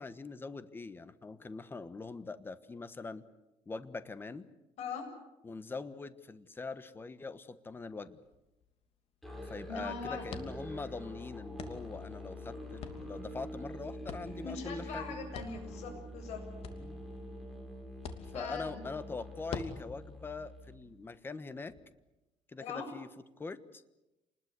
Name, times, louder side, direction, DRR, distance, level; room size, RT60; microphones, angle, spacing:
voice 1, 0.0-3.2 3.7-4.5 5.4-8.2 9.4-15.1 16.8-17.0 18.3-21.7 22.5-23.1 23.4-23.8, left 3 dB, 20° left, 13 dB, 1.3 m, -43 dB
sound 1, 7.6-21.8, left 5 dB, 55° left, 2.9 m, -50 dB
Musical instrument, 9.2-20.8, equal, ahead, 5.5 m, -45 dB
voice 2, 9.7-10.2 14.4-16.4 18.3-18.8 22.6-22.9, left 5 dB, 70° left, 4 dB, 7.8 m, -41 dB
28.5 x 20.5 x 8.3 m, 0.99 s
cardioid pair, 145°, 12 cm